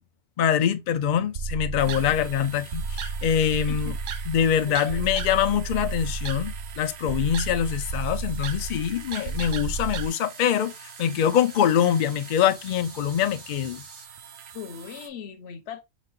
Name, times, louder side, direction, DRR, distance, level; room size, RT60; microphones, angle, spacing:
voice 1, 0.4-3.9 4.3-10.7 11.0-13.8, left 9 dB, 75° left, 0.4 m, -24 dB
sound 1, 1.3-10.1, right 4 dB, 65° right, 0.6 m, -32 dB
voice 2, 1.8-2.2 3.7-4.3 4.7-5.1 14.5-15.8, left 7 dB, 60° left, 0.9 m, -40 dB
sound 2, 1.8-15.1, right 8 dB, 85° right, 1.1 m, -46 dB
sound 3, 7.7-14.1, right 1 dB, 30° right, 1.4 m, -50 dB
5.0 x 4.1 x 2.3 m
omnidirectional pair, 1.3 m